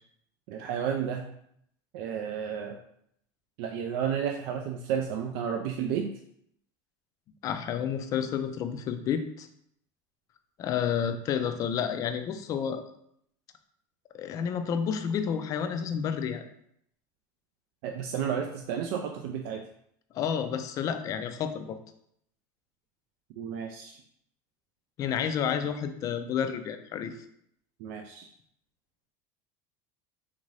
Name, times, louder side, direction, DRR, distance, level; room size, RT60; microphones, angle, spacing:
voice 1, 0.5-1.3 1.9-2.8 3.6-6.1 17.8-19.6 23.4-24.0 27.8-28.3, right 8 dB, 65° right, 3 dB, 0.3 m, -32 dB
voice 2, 7.4-9.5 10.6-12.8 14.1-16.4 20.1-21.8 25.0-27.2, left 8 dB, 35° left, 8 dB, 0.3 m, -30 dB
3.6 x 2.6 x 3.1 m, 0.70 s
cardioid pair, 150°, 10 cm